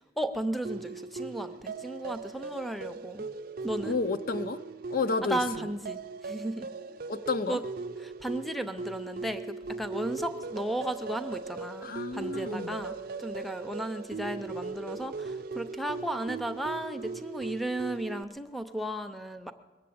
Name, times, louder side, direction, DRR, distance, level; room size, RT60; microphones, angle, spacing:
voice 1, 0.0-3.3 3.6-4.0 5.2-6.7 7.5-7.6 8.0-19.5, right 1 dB, ahead, 7 dB, 0.5 m, -35 dB
sound 1, 0.6-18.2, right 4 dB, 50° right, 0.4 m, -39 dB
voice 2, 3.9-4.6 4.9-5.4 7.1-7.6 11.8-12.8, left 4 dB, 50° left, 11 dB, 0.5 m, -30 dB
21.5 x 7.6 x 8.6 m, 1.3 s
head